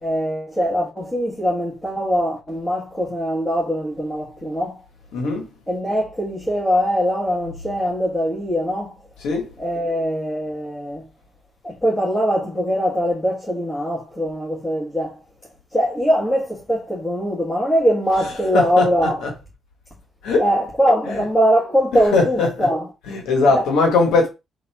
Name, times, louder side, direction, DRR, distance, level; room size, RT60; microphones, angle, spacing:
voice 1, 0.0-4.8 5.7-9.0 9.6-11.1 11.6-15.2 15.7-19.2 20.4-22.9 23.5-23.7, equal, 15° left, 1.5 m, -22 dB
voice 2, 5.1-5.5 9.2-9.5 18.5-18.9 19.2-19.3 20.2-20.5 21.1-21.2 22.1-22.7 23.1-24.3, left 3 dB, 85° left, 1.4 m, -19 dB
3.9 x 2.8 x 4.7 m
cardioid pair, 90°, 0 cm